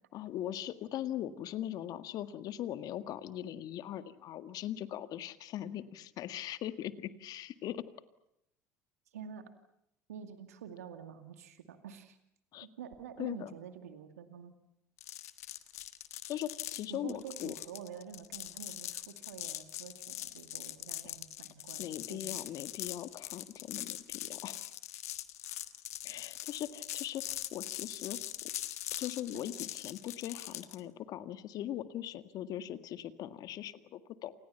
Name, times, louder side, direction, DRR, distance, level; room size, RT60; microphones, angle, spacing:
voice 1, 0.1-7.8 12.5-12.7 13.2-13.5 16.3-17.5 21.0-21.1 21.8-24.7 26.0-28.2 29.0-34.3, left 12 dB, 50° left, 11 dB, 1.8 m, -40 dB
voice 2, 9.1-9.5 10.1-12.2 12.6-14.5 16.9-22.4 29.3-29.4, right 8 dB, 80° right, 8 dB, 2.3 m, -48 dB
sound 1, 15.0-30.8, left 13 dB, 75° left, 1.5 m, -42 dB
29.0 x 27.5 x 5.8 m, 0.78 s
hypercardioid pair, 70°, 8 cm